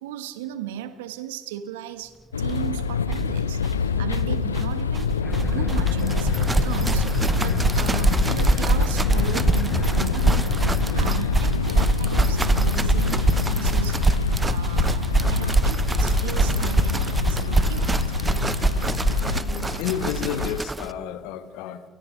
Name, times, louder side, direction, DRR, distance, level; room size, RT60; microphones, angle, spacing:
voice 1, 0.0-10.5 10.9-14.0 14.4-17.9, right 11 dB, 80° right, 11 dB, 1.3 m, -36 dB
sound 1, 2.3-20.6, left 6 dB, 85° left, 0.5 m, -26 dB
sound 2, 2.5-2.6 2.8-2.9 3.0-20.9, right 2 dB, 20° right, 1.0 m, -24 dB
sound 3, 5.2-11.6, left 2 dB, 30° left, 4.6 m, -32 dB
voice 2, 19.4-21.8, left 9 dB, 70° left, 11 dB, 1.6 m, -31 dB
29.5 x 28.0 x 3.3 m, 1.2 s
figure-of-eight pair, 50°, 0 cm